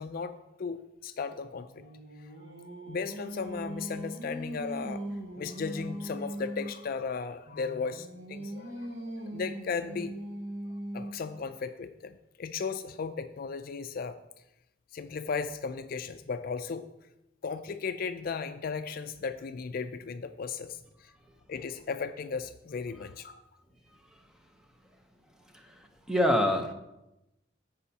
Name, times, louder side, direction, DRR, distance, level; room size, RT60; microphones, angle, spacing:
voice 1, 0.0-2.0 2.9-5.0 5.4-10.1 10.9-14.2 14.9-16.9 17.4-21.1 21.5-23.4, left 5 dB, 50° left, 9 dB, 0.4 m, -36 dB
Singing, 1.4-6.9 7.5-11.3, right 1 dB, 75° right, 1.3 m, -40 dB
voice 2, 25.5-26.7, left 1 dB, 5° right, 4 dB, 0.7 m, -27 dB
15.0 x 5.5 x 2.8 m, 0.91 s
head